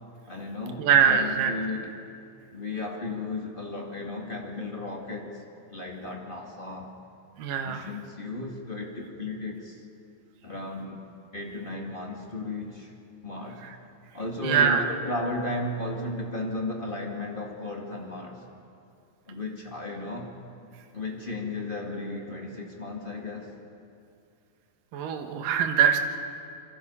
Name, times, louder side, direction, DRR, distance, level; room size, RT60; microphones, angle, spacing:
voice 1, 0.3-1.9 2.5-5.4 5.7-6.9 7.6-9.8 10.4-11.0 11.3-12.9 13.2-13.6 14.1-18.4 19.3-20.3 20.9-23.5, left 2 dB, 25° left, 0 dB, 1.1 m, -34 dB
voice 2, 0.8-1.5 7.4-7.8 14.4-14.8 24.9-26.0, right 7 dB, 65° right, 5 dB, 2.9 m, -22 dB
27.5 x 24.0 x 5.6 m, 2.5 s
omnidirectional pair, 4.4 m